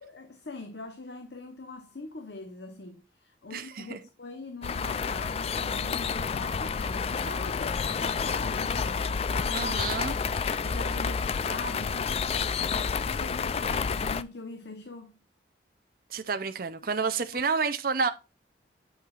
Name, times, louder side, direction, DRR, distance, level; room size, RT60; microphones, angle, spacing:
voice 1, 0.0-9.7 10.6-12.5 13.0-15.1, left 2 dB, 65° left, 1.0 m, -42 dB
voice 2, 3.5-4.0 9.5-10.1 16.1-18.1, right 5 dB, 50° right, 0.6 m, -29 dB
sound 1, 4.6-14.2, left 5 dB, 35° left, 0.3 m, -29 dB
8.7 x 7.1 x 2.4 m
head